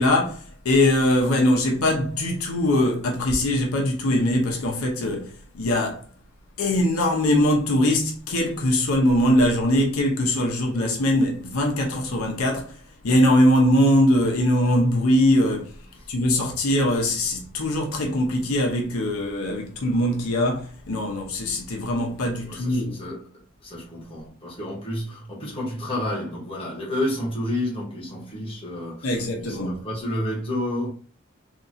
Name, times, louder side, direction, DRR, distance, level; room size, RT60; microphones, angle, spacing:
voice 1, 0.0-5.2 5.5-6.0 6.6-12.7 13.0-15.7 16.1-23.0 29.0-29.8, left 1 dB, 85° left, 0.7 m, -21 dB
voice 2, 22.4-30.9, left 1 dB, 25° left, 1.0 m, -30 dB
2.9 x 2.7 x 2.5 m
head